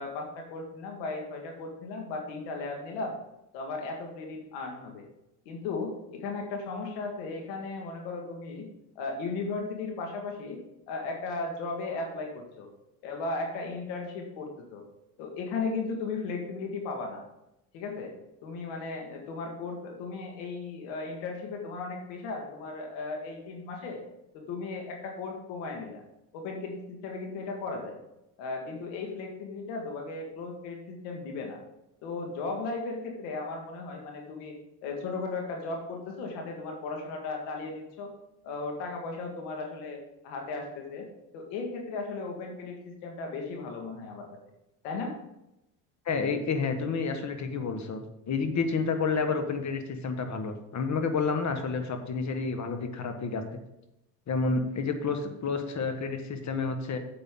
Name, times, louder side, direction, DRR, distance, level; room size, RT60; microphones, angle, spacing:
voice 1, 0.0-3.2 3.5-5.0 5.5-8.7 9.0-10.6 10.9-12.7 13.0-14.8 15.2-17.2 17.7-18.1 18.4-24.0 24.3-26.0 26.3-28.0 28.4-31.6 32.0-34.6 34.8-38.1 38.4-41.1 41.3-44.3 44.8-45.1, left 3 dB, 80° left, 2 dB, 1.9 m, -36 dB
voice 2, 46.0-53.4 54.3-57.0, left 4 dB, 40° left, 6 dB, 1.5 m, -30 dB
8.4 x 7.8 x 3.8 m, 0.87 s
supercardioid pair, 90°, 44 cm